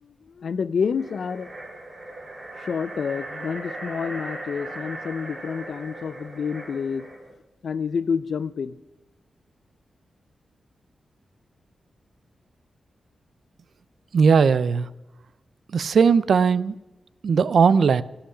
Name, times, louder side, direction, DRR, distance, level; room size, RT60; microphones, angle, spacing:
voice 1, 0.0-1.5 2.6-7.1 7.6-8.8, left 6 dB, 65° left, 0.5 m, -28 dB
sound 1, 0.9-7.3, right 1 dB, 35° right, 3.1 m, -38 dB
voice 2, 14.1-14.9 15.7-16.8 17.2-18.0, right 6 dB, 70° right, 0.5 m, -18 dB
17.0 x 5.9 x 9.8 m
wide cardioid pair, 125°, 0 cm